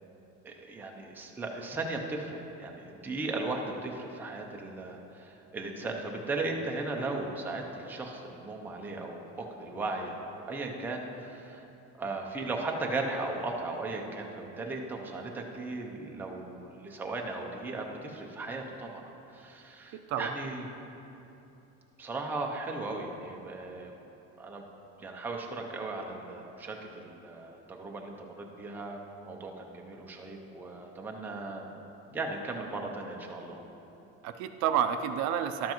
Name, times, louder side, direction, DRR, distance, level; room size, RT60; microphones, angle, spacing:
voice 1, 0.4-11.6 12.0-19.0 19.3-20.7 22.0-23.9 24.4-24.7 25.0-29.0 29.2-31.7 32.1-33.6, right 2 dB, 5° right, 0 dB, 0.5 m, -37 dB
voice 2, 19.9-20.4 34.2-35.7, right 8 dB, 65° right, 8 dB, 0.5 m, -30 dB
12.0 x 7.5 x 3.0 m, 2.9 s
cardioid pair, 170°, 30 cm